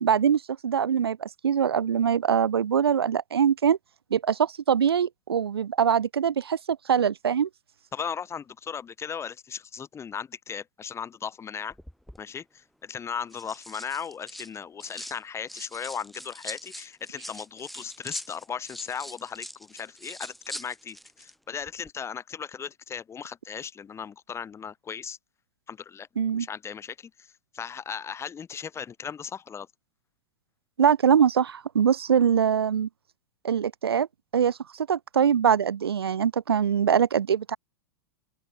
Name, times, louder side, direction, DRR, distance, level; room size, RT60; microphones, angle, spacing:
voice 1, 0.0-3.8 4.1-7.5 26.2-26.5 30.8-32.9 33.4-34.1 34.3-37.6, right 8 dB, 75° right, 1.0 m, -23 dB
voice 2, 7.9-11.8 12.2-25.2 25.7-26.1 26.3-27.0 27.5-29.7, left 7 dB, 20° left, 3.7 m, -37 dB
sound 1, 11.7-12.2 13.1-15.2 15.5-21.3 21.6-21.9, equal, ahead, 7.5 m, -43 dB
figure-of-eight pair, 95°, 13 cm